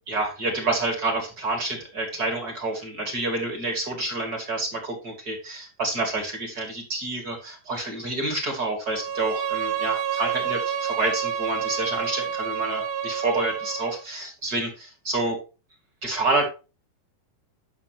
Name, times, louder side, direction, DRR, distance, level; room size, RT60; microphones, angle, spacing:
voice 1, 0.1-15.4 16.0-16.5, right 2 dB, 30° right, 2 dB, 2.1 m, -28 dB
Bowed string instrument, 8.9-14.0, right 8 dB, 70° right, 2.2 m, -29 dB
11.0 x 6.8 x 2.9 m, 0.31 s
omnidirectional pair, 4.7 m